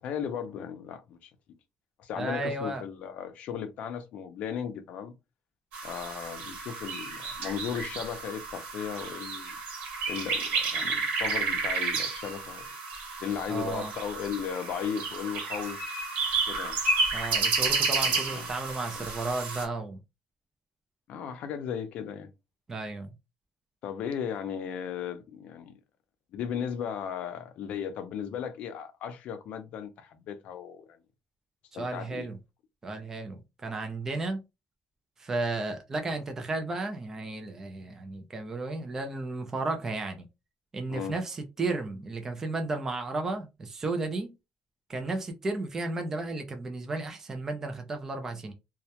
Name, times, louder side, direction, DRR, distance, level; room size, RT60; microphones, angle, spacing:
voice 1, 0.0-1.3 2.0-5.1 5.8-9.6 10.1-12.7 13.2-15.8 16.4-16.8 17.9-18.5 18.9-19.1 21.1-22.3 23.8-25.8 26.3-31.0 31.7-32.3 40.9-41.2, left 8 dB, 55° left, 0.4 m, -36 dB
voice 2, 2.1-2.8 13.5-13.9 17.1-20.0 22.7-23.1 31.7-32.4 32.8-34.4 35.2-40.3 40.7-44.3 44.9-48.5, right 2 dB, 15° right, 0.4 m, -33 dB
sound 1, 5.7-19.6, right 4 dB, 80° right, 1.1 m, -31 dB
2.2 x 2.1 x 2.8 m
cardioid pair, 180°, 3 cm